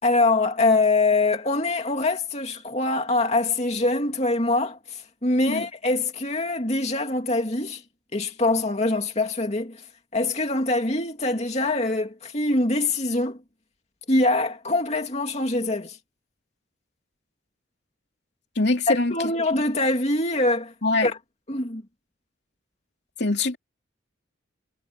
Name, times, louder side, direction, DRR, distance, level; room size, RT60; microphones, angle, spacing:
voice 1, 0.0-7.8 8.1-9.8 10.1-13.4 14.1-16.0 18.9-20.7 21.0-21.2 21.5-21.8, left 2 dB, 35° left, 2.6 m, -24 dB
voice 2, 18.5-19.6 20.8-21.1 23.2-23.6, left 3 dB, 55° left, 2.9 m, -24 dB
head